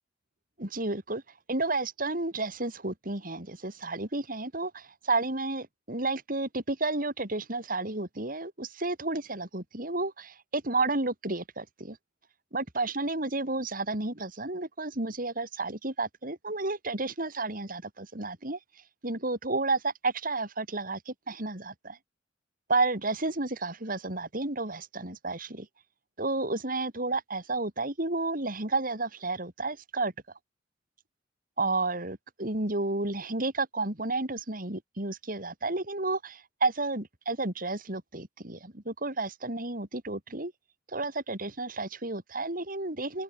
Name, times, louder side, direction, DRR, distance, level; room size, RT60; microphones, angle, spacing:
voice 1, 0.6-1.2 1.5-12.0 12.5-18.6 19.0-22.0 22.7-25.7 26.2-30.1 31.6-40.5 40.9-43.2, right 2 dB, 50° right, 3.7 m, -31 dB
open air
head